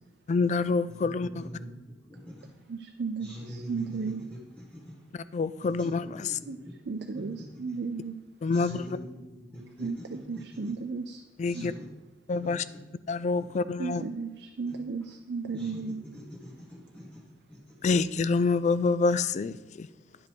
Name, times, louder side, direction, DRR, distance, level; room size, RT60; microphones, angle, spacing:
voice 1, 0.3-1.5 5.3-6.4 8.4-9.0 11.4-11.7 12.3-12.6 13.1-14.0 17.8-19.9, left 4 dB, 40° left, 15 dB, 0.3 m, -27 dB
voice 2, 0.8-2.5 3.2-4.9 5.6-6.5 7.1-7.8 8.5-10.7 11.4-11.9 12.3-12.8 13.9-14.0 14.7-14.8 15.5-17.2 17.5-17.9, equal, 10° left, -6 dB, 1.2 m, -45 dB
voice 3, 2.7-4.3 6.5-6.6 6.9-8.2 9.8-11.2 11.5-11.7 13.8-16.1, right 4 dB, 65° right, 5 dB, 0.5 m, -34 dB
10.0 x 5.3 x 4.5 m, 1.1 s
head